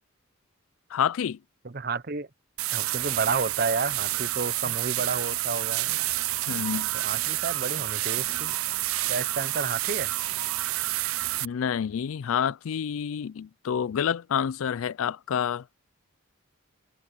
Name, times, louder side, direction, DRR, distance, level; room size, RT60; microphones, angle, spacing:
voice 1, 0.9-1.4 4.7-4.8 6.5-6.9 11.4-15.7, left 8 dB, 75° left, 0.4 m, -28 dB
voice 2, 1.6-2.3 2.7-5.9 6.9-8.5 9.1-10.1, right 4 dB, 45° right, 0.8 m, -31 dB
sound 1, 2.6-11.4, right 16 dB, 75° right, 0.5 m, -29 dB
head